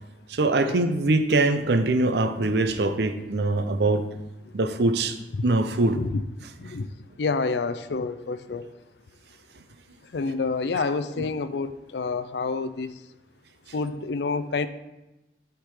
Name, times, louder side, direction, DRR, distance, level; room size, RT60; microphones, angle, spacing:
voice 1, 0.3-4.0 4.5-5.2 5.4-6.0, right 2 dB, 75° right, 9 dB, 0.6 m, -23 dB
voice 2, 7.2-8.7 10.1-13.0 13.7-14.7, left 4 dB, 75° left, 12 dB, 0.4 m, -28 dB
10.0 x 3.7 x 4.8 m, 1.0 s
head